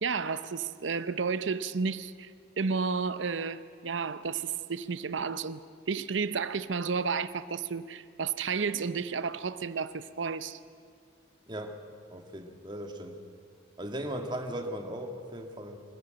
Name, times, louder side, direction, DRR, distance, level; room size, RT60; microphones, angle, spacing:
voice 1, 0.0-10.6, right 5 dB, 90° right, 0.7 m, -32 dB
voice 2, 11.5-11.8 12.1-13.2 13.8-15.8, equal, 25° right, 1.8 m, -37 dB
24.0 x 14.5 x 9.0 m
head